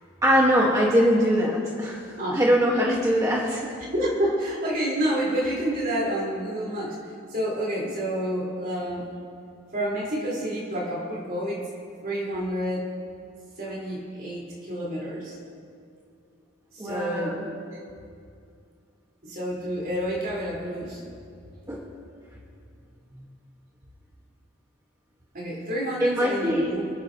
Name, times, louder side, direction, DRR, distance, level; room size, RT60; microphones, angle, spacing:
voice 1, 0.2-3.8 16.8-17.5 21.7-21.8 26.0-26.7, equal, 15° right, -4 dB, 1.4 m, -22 dB
voice 2, 3.8-7.0 7.3-9.1 9.7-11.6 12.0-12.9 13.6-15.4 16.7-17.4 19.2-21.0 25.3-26.9, right 1 dB, 50° right, -5 dB, 4.0 m, -29 dB
28.0 x 10.0 x 2.9 m, 2.4 s
head